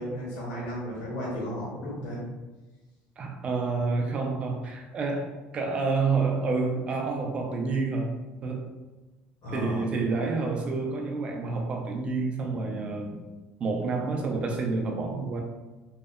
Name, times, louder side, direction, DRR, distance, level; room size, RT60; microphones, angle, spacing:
voice 1, 0.0-2.2 9.4-9.9, equal, 60° left, -7 dB, 0.8 m, -34 dB
voice 2, 3.2-8.1 8.4-8.7 9.5-13.3 13.6-15.4, right 4 dB, 30° right, 1 dB, 0.4 m, -29 dB
2.7 x 2.0 x 2.3 m, 1.2 s
cardioid pair, 160°, 4 cm